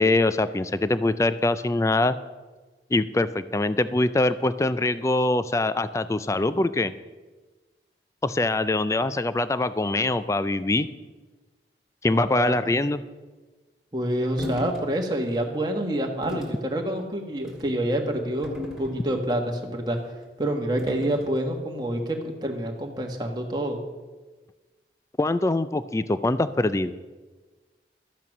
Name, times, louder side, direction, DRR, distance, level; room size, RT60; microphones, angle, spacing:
voice 1, 0.0-2.2 2.9-6.9 8.2-10.9 12.0-13.0 25.2-26.9, left 2 dB, 15° left, 14 dB, 0.3 m, -23 dB
voice 2, 12.0-12.7 13.9-20.0 20.4-23.8, right 1 dB, 25° right, 1 dB, 1.4 m, -27 dB
sound 1, 14.4-14.8 15.3-15.5 16.2-16.6 17.4-17.7 18.4-19.3 20.8-21.3, left 1 dB, 5° right, 2.5 m, -35 dB
12.5 x 8.6 x 6.0 m, 1.3 s
head